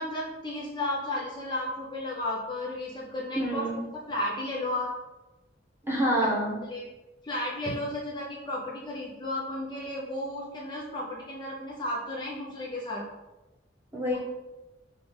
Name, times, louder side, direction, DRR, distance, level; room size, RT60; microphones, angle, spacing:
voice 1, 0.0-3.6 4.1-4.9 6.7-6.9 7.2-13.0 14.1-14.2, left 1 dB, 25° left, -4 dB, 0.6 m, -33 dB
voice 2, 3.3-3.8 5.9-6.6 13.9-14.2, right 1 dB, 15° right, -4 dB, 1.1 m, -27 dB
5.1 x 2.5 x 3.9 m, 1.0 s
head